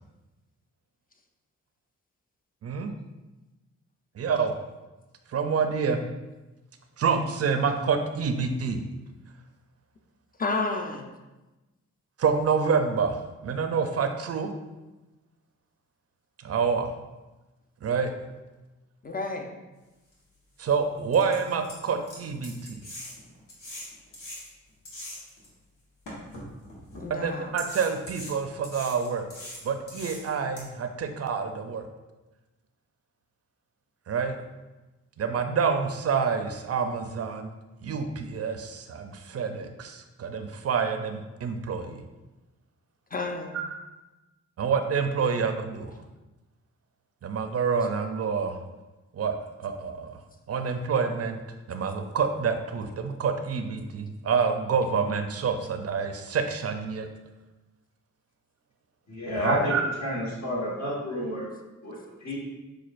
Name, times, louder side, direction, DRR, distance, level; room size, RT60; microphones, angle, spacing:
voice 1, 2.6-2.9 4.2-4.5 5.3-6.0 7.0-8.8 12.2-14.5 16.4-16.9 17.8-18.1 20.6-22.8 27.1-29.3 29.6-31.8 34.1-34.4 35.2-37.5 37.8-42.0 43.5-43.8 44.6-45.9 47.2-48.6 49.1-50.2 50.5-51.4 51.7-57.1 59.3-59.8, right 5 dB, 50° right, 6 dB, 0.5 m, -27 dB
voice 2, 10.4-11.1 19.0-19.5 27.0-27.5 43.1-43.6, left 3 dB, 30° left, 4 dB, 0.6 m, -31 dB
sound 1, 20.1-20.2 20.7-20.8 21.1-25.5 26.1-27.0 27.6-30.6, left 1 dB, 85° left, 1.2 m, -42 dB
voice 3, 59.1-59.7 60.0-61.5 61.8-62.4, equal, 60° left, -4 dB, 1.4 m, -30 dB
6.1 x 2.4 x 2.5 m, 1.1 s
cardioid pair, 60°, 31 cm